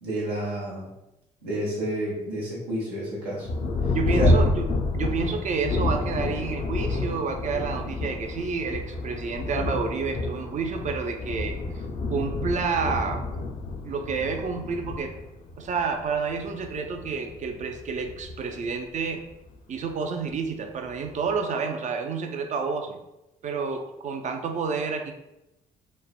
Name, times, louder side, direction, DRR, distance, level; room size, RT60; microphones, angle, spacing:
voice 1, 0.0-0.9 1.4-3.5 4.2-4.3, right 1 dB, 85° right, -6 dB, 0.8 m, -29 dB
Thunder, 3.4-19.5 20.3-20.4 20.9-21.4, left 2 dB, 45° left, 0.5 m, -29 dB
voice 2, 3.9-4.6 4.9-11.6 12.1-13.3 13.8-15.1 15.6-19.2 19.7-23.0 23.4-25.1, right 5 dB, 40° right, 5 dB, 0.4 m, -29 dB
3.2 x 2.0 x 2.3 m, 0.91 s
hypercardioid pair, 45°, 20 cm